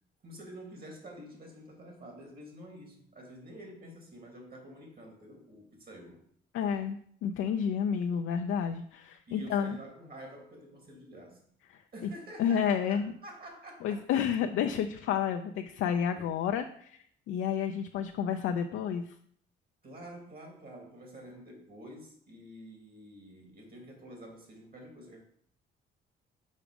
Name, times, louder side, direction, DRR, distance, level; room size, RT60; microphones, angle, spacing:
voice 1, 0.2-6.2 9.3-11.4 11.9-14.3 16.2-16.3 19.8-25.2, equal, 50° right, 2 dB, 2.7 m, -48 dB
voice 2, 6.5-9.8 11.7-11.8 12.4-13.1 13.8-17.0 17.3-19.1, left 8 dB, 80° left, 5 dB, 0.5 m, -30 dB
6.3 x 5.0 x 5.1 m, 0.65 s
cardioid pair, 90°, 20 cm